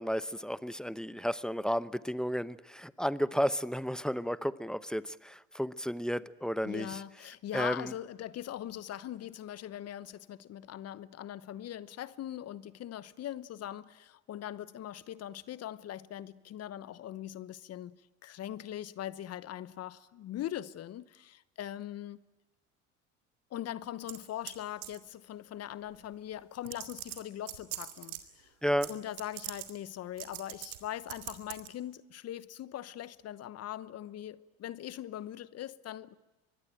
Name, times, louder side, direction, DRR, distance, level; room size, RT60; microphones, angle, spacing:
voice 1, 0.0-7.0 7.5-7.9 28.6-28.9, equal, ahead, 0.8 m, -32 dB
voice 2, 6.6-18.0 18.2-22.2 23.5-28.5 28.9-36.2, left 12 dB, 40° left, 1.0 m, -41 dB
sound 1, 24.1-24.6 24.8-25.1 26.1-26.2 26.6-28.2 28.8-28.9 29.2-29.7 30.2-30.8 31.1-31.7, right 16 dB, 75° right, 2.5 m, -41 dB
24.5 x 20.5 x 9.1 m
hypercardioid pair, 75°, 37 cm